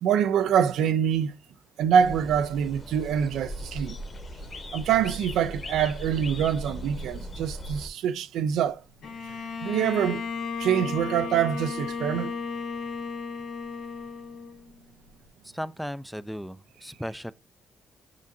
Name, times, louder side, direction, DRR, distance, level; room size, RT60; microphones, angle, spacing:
voice 1, 0.0-1.3 1.8-3.9 4.7-8.8 9.6-10.2 10.6-12.3, right 8 dB, 80° right, 0.4 m, -25 dB
sound 1, 2.0-7.9, equal, 40° left, 1.2 m, -38 dB
Bowed string instrument, 9.0-14.8, left 5 dB, 75° left, 1.7 m, -34 dB
voice 2, 15.4-17.3, equal, ahead, 0.3 m, -36 dB
7.3 x 2.6 x 2.6 m
cardioid pair, 90°, 0 cm